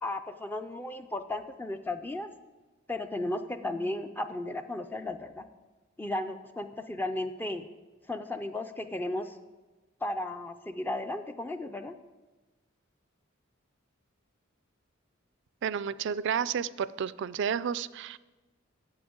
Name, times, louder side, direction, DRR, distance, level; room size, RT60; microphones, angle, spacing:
voice 1, 0.0-2.3 2.9-5.4 6.0-7.7 8.1-9.4 10.0-11.9, left 1 dB, 10° left, 8 dB, 0.4 m, -35 dB
voice 2, 15.6-18.2, right 7 dB, 60° right, 18 dB, 0.4 m, -31 dB
8.7 x 6.9 x 8.6 m, 1.2 s
head